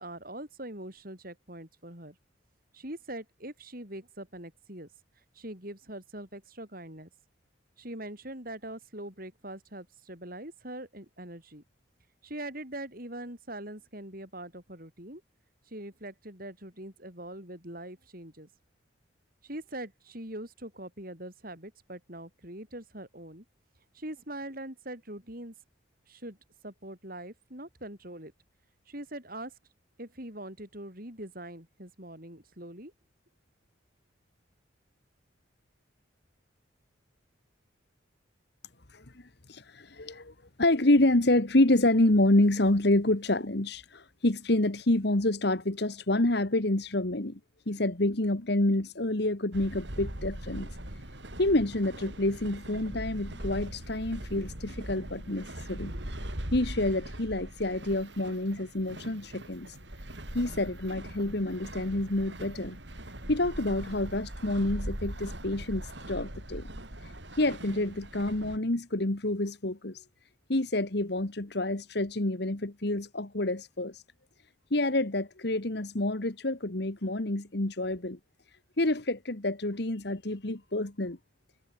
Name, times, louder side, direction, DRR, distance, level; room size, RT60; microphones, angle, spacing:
voice 1, 0.0-2.2 2.7-4.9 5.3-7.1 7.8-11.6 12.2-15.2 15.7-18.5 19.4-23.4 23.9-25.5 26.1-26.4 26.6-28.3 28.9-29.5 30.0-32.9, right 1 dB, 45° right, 7.7 m, -42 dB
voice 2, 38.9-40.3 40.6-47.4 47.7-50.7 51.4-55.9 56.5-59.8 60.3-62.8 63.3-66.7 67.0-70.0 70.5-74.0 74.7-78.2 78.8-81.2, left 1 dB, 55° left, 1.6 m, -28 dB
sound 1, 49.5-68.6, right 1 dB, 60° right, 5.4 m, -41 dB
head